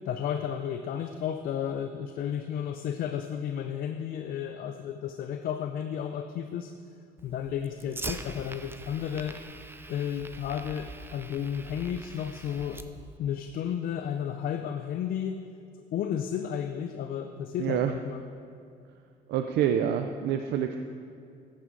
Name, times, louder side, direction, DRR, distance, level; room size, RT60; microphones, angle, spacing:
voice 1, 0.1-6.7 7.2-9.4 9.9-12.8 13.2-15.4 15.9-18.2, left 9 dB, 60° left, 7 dB, 0.5 m, -33 dB
Fire, 7.2-13.2, right 3 dB, 15° right, 0.5 m, -43 dB
voice 2, 17.6-17.9 19.3-20.8, right 9 dB, 75° right, 6 dB, 0.5 m, -27 dB
14.0 x 7.3 x 3.8 m, 2.4 s
cardioid pair, 110°, 17 cm